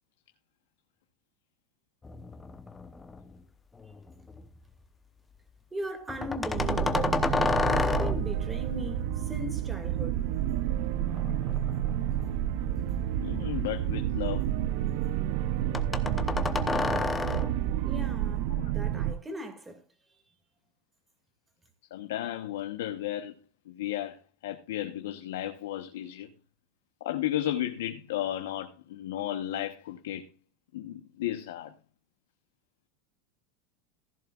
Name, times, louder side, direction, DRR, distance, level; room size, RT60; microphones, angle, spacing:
sound 1, 2.0-3.4 3.8-4.5 6.1-8.5 11.0-12.5 13.0-14.3 15.7-17.7, left 4 dB, 15° left, 0.9 m, -31 dB
voice 1, 5.7-7.3 7.6-10.2 17.8-19.8, equal, 10° right, 2.2 m, -38 dB
sound 2, 6.5-19.1, right 11 dB, 60° right, 0.6 m, -30 dB
voice 2, 13.2-14.4 21.9-23.3 23.7-24.2 24.4-26.3 27.0-30.3 30.7-31.7, left 12 dB, 85° left, 1.0 m, -33 dB
15.0 x 11.0 x 2.4 m
supercardioid pair, 140°, 0 cm